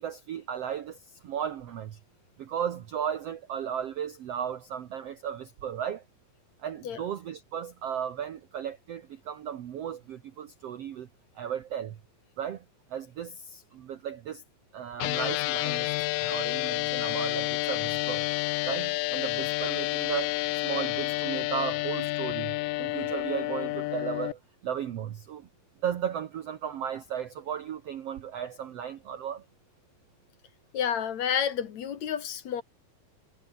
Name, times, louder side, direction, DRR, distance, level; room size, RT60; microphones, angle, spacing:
voice 1, 0.0-2.0 2.4-6.0 6.6-11.1 11.4-12.0 12.4-12.6 12.9-14.4 14.7-18.3 18.7-20.4 20.6-25.5 25.8-29.5, right 9 dB, 60° right, 1.7 m, -35 dB
sound 1, 15.0-24.3, left 21 dB, 80° left, 2.1 m, -30 dB
voice 2, 30.7-32.6, left 8 dB, 55° left, 2.6 m, -30 dB
omnidirectional pair, 4.1 m